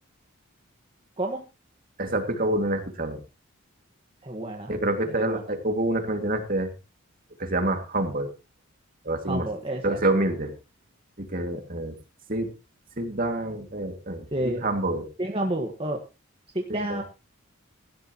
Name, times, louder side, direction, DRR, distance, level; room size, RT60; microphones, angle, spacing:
voice 1, 2.0-3.2 4.7-6.7 7.4-8.3 9.0-9.5 9.8-10.5 11.2-11.9 12.3-12.5 13.0-15.0 16.7-17.0, right 1 dB, 40° right, 5 dB, 2.4 m, -27 dB
voice 2, 4.2-4.7 5.1-5.4 9.3-10.0 14.3-14.6 15.2-16.0 16.5-17.0, right 1 dB, 25° right, 1 dB, 1.6 m, -30 dB
16.5 x 13.0 x 3.0 m, 0.30 s
head